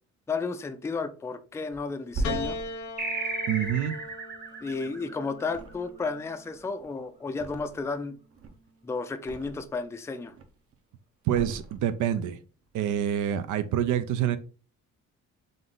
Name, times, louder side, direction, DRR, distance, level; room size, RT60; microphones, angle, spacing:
voice 1, 0.3-2.6 4.6-8.2 8.8-10.3, left 4 dB, 10° left, 0.3 m, -33 dB
Thump thud, 1.7-5.0 5.4-6.2 6.5-8.0 8.3-9.8 10.2-10.7 11.3-12.3 12.6-12.8, right 2 dB, 50° right, 0.8 m, -39 dB
Piano, 2.2-6.7 7.8-8.5, left 3 dB, 70° left, 0.9 m, -39 dB
sound 1, 3.0-6.0, right 3 dB, 30° right, 1.1 m, -35 dB
voice 2, 3.5-4.0 11.3-12.4 12.7-14.4, right 10 dB, 75° right, 0.5 m, -26 dB
3.8 x 2.5 x 3.7 m
cardioid pair, 90°, 30 cm